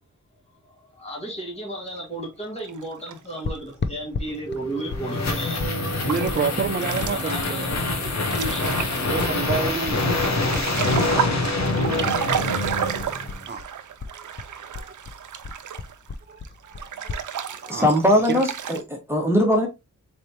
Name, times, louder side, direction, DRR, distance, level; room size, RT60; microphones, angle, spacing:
voice 1, 0.9-6.4 6.7-7.7 8.0-8.6, right 1 dB, 20° left, 1.9 m, -34 dB
sound 1, 2.6-3.4 4.6-4.7 5.1-5.2 5.8-16.1 16.4-18.8, right 8 dB, 80° right, 0.6 m, -32 dB
sound 2, 3.4-11.7 12.0-13.7 14.0-17.2, left 4 dB, 35° left, 0.6 m, -34 dB
sound 3, 4.5-13.4, left 2 dB, 65° left, 1.1 m, -25 dB
voice 2, 6.0-7.8 9.0-10.0 13.0-13.1 13.5-13.6 14.5-14.9 16.3-17.2 17.6-17.9 18.3-18.4, right 5 dB, 35° right, 0.6 m, -29 dB
voice 3, 17.7-19.7, equal, 10° right, 1.4 m, -20 dB
4.0 x 3.4 x 2.8 m
wide cardioid pair, 80°, 30 cm